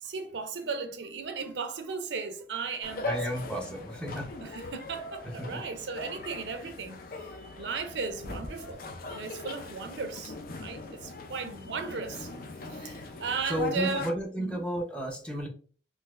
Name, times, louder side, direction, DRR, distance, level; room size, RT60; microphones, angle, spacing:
voice 1, 0.0-3.5 4.4-7.0 7.6-8.8 9.1-12.3 12.7-14.1 14.4-14.6, right 5 dB, 85° right, 0.5 m, -36 dB
sound 1, 2.8-14.1, left 3 dB, 50° left, 0.5 m, -40 dB
voice 2, 3.0-4.6 5.2-5.6 10.6-10.8 13.1-13.2 13.5-15.5, right 1 dB, 5° left, 0.7 m, -33 dB
3.9 x 2.6 x 2.4 m
head